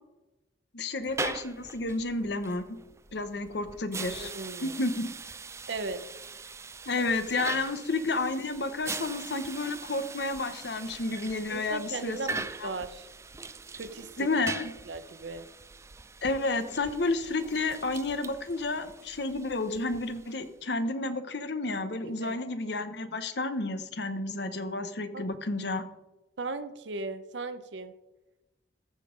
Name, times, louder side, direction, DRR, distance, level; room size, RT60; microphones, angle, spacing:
voice 1, 0.7-2.8 3.1-4.3 4.6-5.1 6.9-12.7 14.2-14.7 16.2-25.8, left 2 dB, 65° left, 11 dB, 0.9 m, -31 dB
sound 1, 1.0-20.6, right 4 dB, 15° right, 0.3 m, -42 dB
voice 2, 4.2-4.8 5.7-6.0 11.5-13.1 13.7-14.3 14.9-15.5 22.0-22.3 25.1-25.3 26.4-27.9, right 3 dB, 75° right, 10 dB, 0.7 m, -37 dB
14.0 x 5.3 x 5.1 m, 1.0 s
head